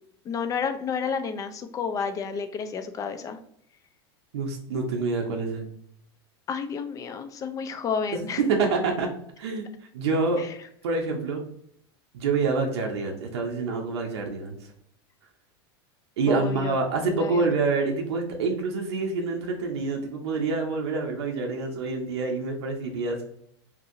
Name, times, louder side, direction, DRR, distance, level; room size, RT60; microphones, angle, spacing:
voice 1, 0.2-3.4 6.5-8.4 10.4-10.5 16.3-16.8 17.1-17.5, left 6 dB, 25° left, 8 dB, 0.4 m, -31 dB
voice 2, 4.3-5.7 8.4-9.1 9.4-9.7 9.9-10.4 10.8-11.4 12.1-14.7 16.2-23.2, right 4 dB, 90° right, 1 dB, 0.6 m, -27 dB
2.8 x 2.6 x 2.5 m, 0.68 s
supercardioid pair, 120°, 14 cm